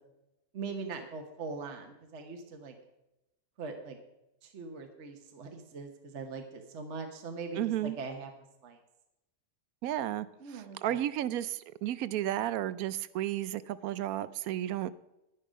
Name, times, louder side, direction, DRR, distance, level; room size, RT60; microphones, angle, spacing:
voice 1, 0.5-2.8 3.6-4.0 4.4-8.3 8.6-8.8 10.4-11.0, right 4 dB, 50° right, 4 dB, 1.3 m, -41 dB
voice 2, 7.6-8.0 9.8-10.3 10.5-14.9, right 12 dB, 75° right, 16 dB, 1.0 m, -33 dB
11.5 x 10.0 x 5.1 m, 0.92 s
omnidirectional pair, 1.6 m